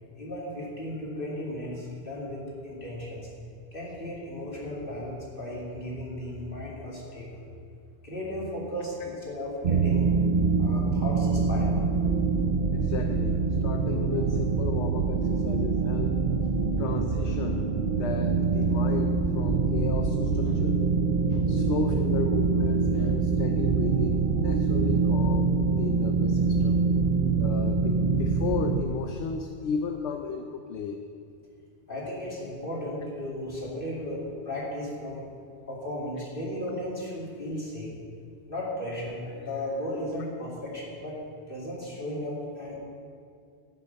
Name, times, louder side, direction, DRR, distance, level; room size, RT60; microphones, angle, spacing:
voice 1, 0.2-3.3 3.7-7.5 8.0-10.1 10.6-11.9 31.9-35.3 35.7-37.9 38.5-41.2 41.5-42.8, left 1 dB, 50° left, -5 dB, 2.9 m, -35 dB
sound 1, 9.6-28.8, right 4 dB, 50° right, 0.7 m, -25 dB
voice 2, 12.7-16.2 16.8-17.7 18.0-20.8 21.3-26.8 27.4-31.0, left 5 dB, 75° left, 5 dB, 1.0 m, -34 dB
12.0 x 8.5 x 5.8 m, 2.4 s
omnidirectional pair, 1.2 m